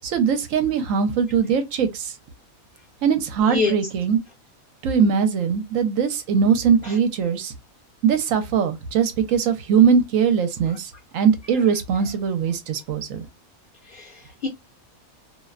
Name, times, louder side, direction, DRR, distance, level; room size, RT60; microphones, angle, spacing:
voice 1, 0.0-2.1 3.0-4.2 4.8-7.5 8.0-13.3, right 7 dB, 70° right, 1.0 m, -21 dB
voice 2, 13.8-14.5, left 4 dB, 50° left, 0.7 m, -26 dB
2.6 x 2.1 x 2.3 m
omnidirectional pair, 1.5 m